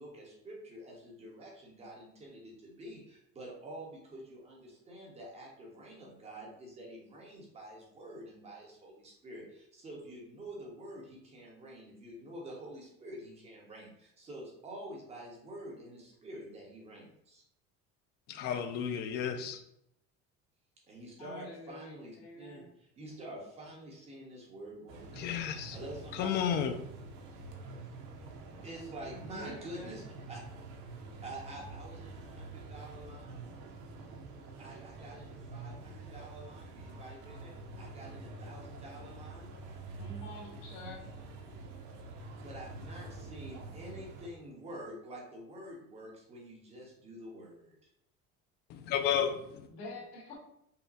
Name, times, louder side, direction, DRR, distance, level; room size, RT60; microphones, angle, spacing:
voice 1, 0.0-17.4 20.9-25.2 25.7-26.3 28.2-28.3 28.6-30.4 31.2-33.4 34.6-39.5 41.0-41.1 42.4-47.7, right 1 dB, 20° right, -2 dB, 1.2 m, -47 dB
voice 2, 18.3-19.5 25.2-25.8 26.1-26.7 48.7-49.6, left 8 dB, 35° left, 6 dB, 0.4 m, -32 dB
voice 3, 21.2-22.6 29.0-29.9 40.0-41.1 49.7-50.3, left 1 dB, 60° left, -2 dB, 1.8 m, -47 dB
sound 1, 24.9-44.3, right 3 dB, 70° right, 0.9 m, -47 dB
5.6 x 2.3 x 4.0 m, 0.76 s
cardioid pair, 170°, 29 cm